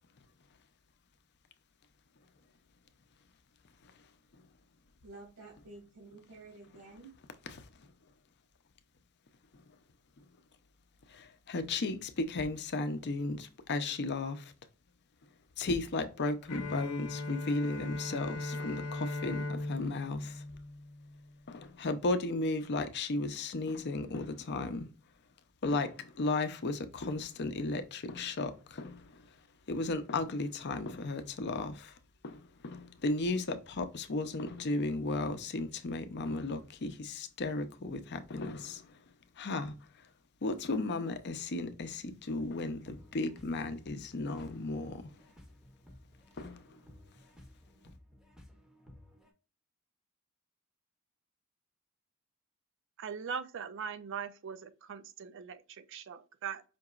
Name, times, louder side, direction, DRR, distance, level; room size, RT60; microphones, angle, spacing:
voice 1, 5.0-7.1, right 3 dB, 80° right, 1.9 m, -51 dB
voice 2, 11.1-14.5 15.6-20.4 21.5-24.9 25.6-29.3 29.7-32.0 32.2-39.0 39.4-39.7 40.4-45.0 46.4-46.8, left 2 dB, 50° left, 0.6 m, -35 dB
Bowed string instrument, 16.5-21.4, left 2 dB, 85° left, 0.7 m, -38 dB
sound 1, 42.8-49.3, left 1 dB, ahead, 0.7 m, -57 dB
voice 3, 53.0-56.6, right 7 dB, 60° right, 0.4 m, -41 dB
5.2 x 2.9 x 2.4 m
head